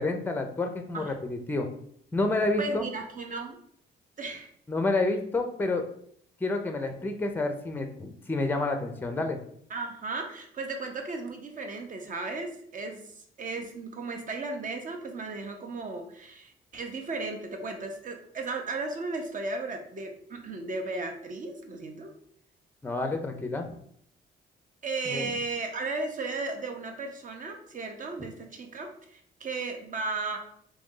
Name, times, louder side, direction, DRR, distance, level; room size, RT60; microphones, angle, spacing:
voice 1, 0.0-1.7 2.1-2.9 4.7-5.8 6.4-9.4 22.8-23.7 25.1-25.3, left 2 dB, 10° left, 6 dB, 0.5 m, -29 dB
voice 2, 2.6-3.6 4.2-4.5 9.7-22.1 24.8-30.4, right 3 dB, 40° right, 4 dB, 0.7 m, -35 dB
3.1 x 2.6 x 3.7 m, 0.66 s
cardioid pair, 90°, 20 cm